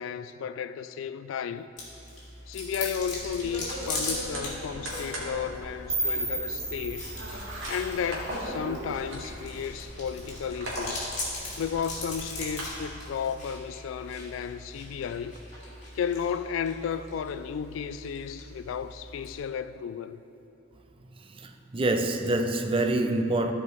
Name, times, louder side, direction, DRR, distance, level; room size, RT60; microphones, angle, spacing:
voice 1, 0.0-1.7 2.5-7.1 7.7-11.1 11.6-15.4 15.9-20.2, left 7 dB, 75° left, 0.3 m, -33 dB
Chewing mastication, 1.8-19.4, left 2 dB, 40° left, 2.2 m, -40 dB
sound 1, 3.0-12.6, equal, 85° right, 2.1 m, -39 dB
sound 2, 5.9-8.8, right 2 dB, 10° right, 1.0 m, -34 dB
voice 2, 21.3-23.5, right 2 dB, 25° right, 0.5 m, -26 dB
13.5 x 5.1 x 4.0 m
head